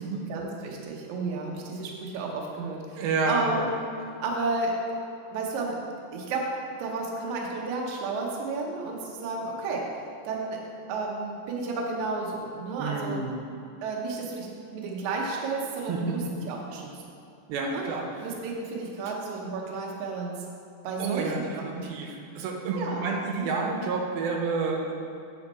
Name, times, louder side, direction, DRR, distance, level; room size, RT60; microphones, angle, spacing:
voice 1, 0.3-3.7 4.2-4.7 5.3-5.8 6.1-9.8 10.2-10.6 10.9-13.2 13.8-16.2 16.5-16.9 17.7-17.8 18.2-20.4 20.8-21.9 22.8-23.1 23.3-23.5, right 3 dB, 70° right, -1 dB, 1.9 m, -32 dB
voice 2, 3.0-3.7 12.8-13.4 15.9-16.3 17.5-18.0 21.0-24.9, right 4 dB, 90° right, 1 dB, 2.7 m, -29 dB
8.4 x 5.3 x 4.2 m, 2.6 s
omnidirectional pair, 4.2 m